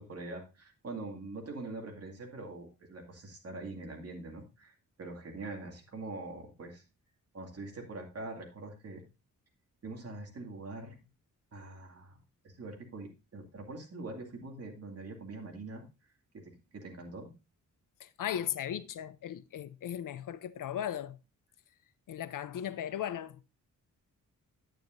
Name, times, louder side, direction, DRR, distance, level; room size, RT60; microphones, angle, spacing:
voice 1, 0.0-6.8 7.3-9.0 9.8-11.0 11.5-12.2 12.4-15.8 16.3-17.3, right 2 dB, 45° right, 2.4 m, -43 dB
voice 2, 18.0-21.2 22.1-23.4, left 10 dB, 70° left, 0.6 m, -37 dB
9.5 x 9.1 x 2.6 m
wide cardioid pair, 140°, 33 cm